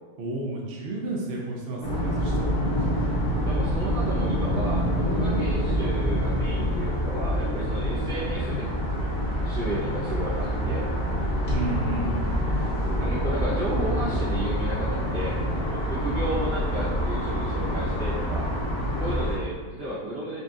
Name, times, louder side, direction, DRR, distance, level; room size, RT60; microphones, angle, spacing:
voice 1, 0.2-2.6 11.5-12.2, right 2 dB, 50° right, -2 dB, 0.7 m, -32 dB
sound 1, 1.8-19.4, equal, 45° left, 1.2 m, -26 dB
voice 2, 3.4-8.9 9.4-10.9 13.0-15.4 15.7-18.5 19.0-20.4, right 1 dB, 90° right, -10 dB, 2.2 m, -33 dB
5.4 x 2.8 x 2.5 m, 1.4 s
omnidirectional pair, 1.6 m